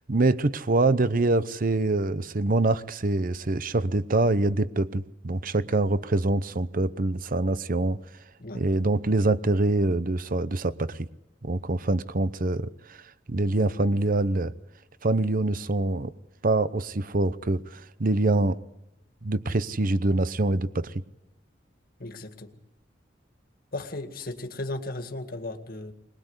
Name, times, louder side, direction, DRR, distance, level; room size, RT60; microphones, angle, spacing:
voice 1, 0.1-8.0 8.5-11.1 11.4-13.0 13.3-14.5 15.0-16.1 16.4-18.6 19.2-20.9, right 2 dB, 50° right, 0.8 m, -25 dB
voice 2, 22.0-22.5 23.7-25.9, left 2 dB, 50° left, 2.0 m, -35 dB
21.5 x 21.0 x 8.1 m
head